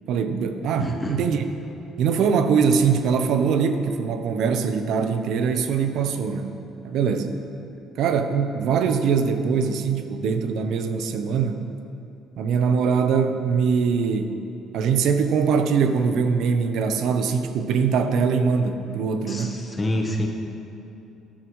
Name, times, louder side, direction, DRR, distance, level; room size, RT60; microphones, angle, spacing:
voice 1, 0.1-1.4 2.0-6.5 6.8-7.3 8.0-11.6 12.4-14.3 14.7-19.6, right 6 dB, 65° right, 8 dB, 0.7 m, -22 dB
voice 2, 0.8-1.1 19.3-20.3, left 1 dB, 20° left, 1 dB, 1.1 m, -27 dB
13.5 x 11.5 x 3.1 m, 2.7 s
cardioid pair, 145°, 0 cm